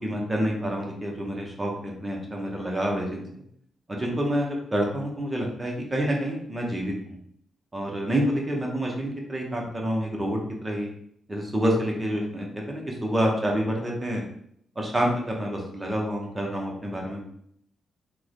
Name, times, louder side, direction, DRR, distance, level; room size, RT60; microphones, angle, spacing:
voice 1, 0.0-3.4 3.9-7.2 7.7-10.9 11.3-14.2 14.8-17.2, equal, 15° right, -1 dB, 0.6 m, -28 dB
3.1 x 2.1 x 3.7 m, 0.68 s
wide cardioid pair, 155°, 0 cm